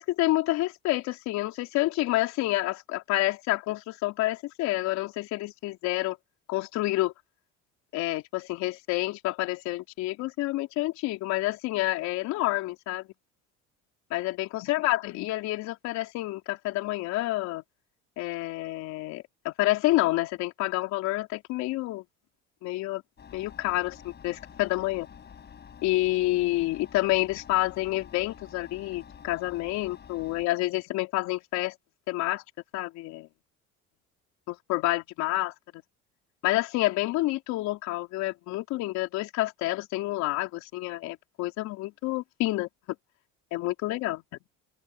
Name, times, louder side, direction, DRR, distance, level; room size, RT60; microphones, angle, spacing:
voice 1, 0.0-6.2 6.5-7.1 7.9-13.1 14.1-17.6 18.2-22.0 22.6-23.0 23.3-25.1 25.8-31.8 32.1-32.4 32.7-33.3 34.5-35.8 36.4-42.7 43.5-44.2, left 18 dB, 70° left, 3.8 m, -28 dB
Engine, 23.2-30.5, left 7 dB, 35° left, 5.9 m, -48 dB
supercardioid pair, 100°, 29 cm